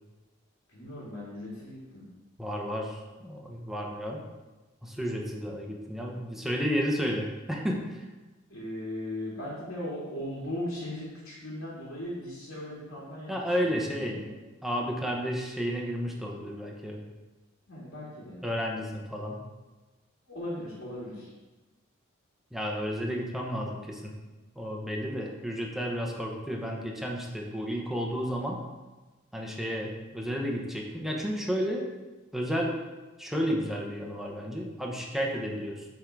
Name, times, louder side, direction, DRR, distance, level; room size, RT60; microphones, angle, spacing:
voice 1, 0.7-2.0 8.5-13.3 13.6-13.9 14.2-14.3 17.7-18.4 20.3-21.3, left 1 dB, 80° left, -7 dB, 2.2 m, -38 dB
voice 2, 2.4-4.2 4.8-8.1 13.3-14.2 14.6-17.0 18.4-19.4 22.5-24.1 24.6-28.6 29.3-31.9 32.3-32.8 33.2-35.9, equal, ahead, -1 dB, 0.9 m, -32 dB
8.5 x 3.7 x 4.6 m, 1.2 s
head